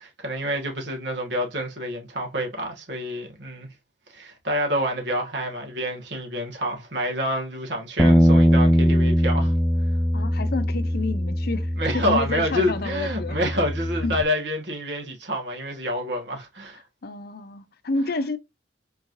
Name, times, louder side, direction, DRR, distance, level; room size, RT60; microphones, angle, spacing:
voice 1, 0.0-3.7 4.1-9.5 11.8-16.8, equal, 65° right, 1.6 m, -28 dB
Bass guitar, 8.0-14.2, equal, ahead, 0.3 m, -21 dB
voice 2, 10.1-11.7 11.9-13.4 14.0-14.1 17.0-18.4, left 3 dB, 55° left, 0.5 m, -29 dB
4.5 x 3.1 x 2.6 m
head